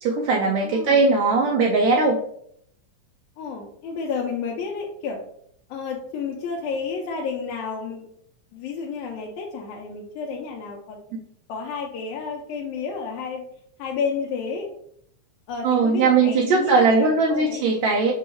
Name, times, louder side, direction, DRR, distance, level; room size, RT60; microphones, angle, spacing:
voice 1, 0.0-2.2 15.6-18.1, right 4 dB, 80° right, -1 dB, 1.6 m, -19 dB
voice 2, 0.6-1.0 3.4-5.2 5.7-8.1 8.5-11.0 11.5-13.4 13.8-14.7 15.5-17.6, left 5 dB, 80° left, -1 dB, 1.9 m, -31 dB
6.8 x 2.3 x 3.0 m, 0.68 s
omnidirectional pair, 3.6 m